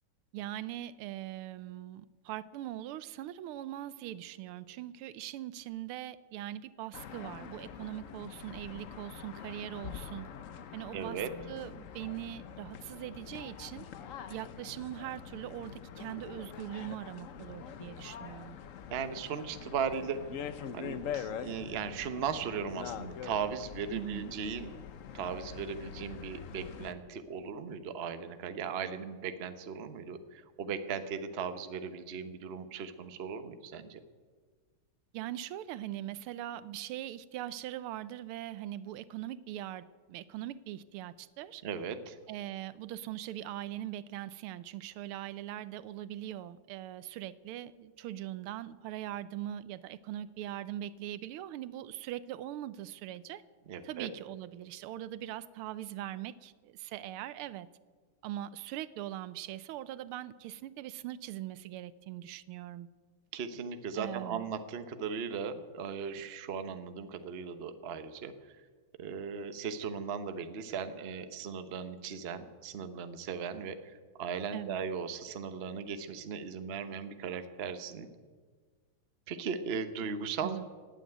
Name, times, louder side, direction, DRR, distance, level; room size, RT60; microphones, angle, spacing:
voice 1, 0.3-10.3 10.7-13.9 14.3-18.6 23.9-24.3 35.1-41.6 42.3-53.4 53.8-57.7 58.2-62.9 63.9-64.5 74.5-74.8 80.4-80.7, right 13 dB, 85° right, 16 dB, 1.5 m, -41 dB
sound 1, 6.9-26.9, left 8 dB, 70° left, 0.7 m, -44 dB
voice 2, 10.9-11.3 18.9-20.2 20.7-24.7 25.1-34.0 41.6-42.1 53.7-54.1 63.3-68.3 69.0-73.8 74.2-78.1 79.3-80.6, right 6 dB, 45° right, 9 dB, 0.8 m, -37 dB
17.0 x 9.2 x 9.3 m, 1.5 s
omnidirectional pair, 2.4 m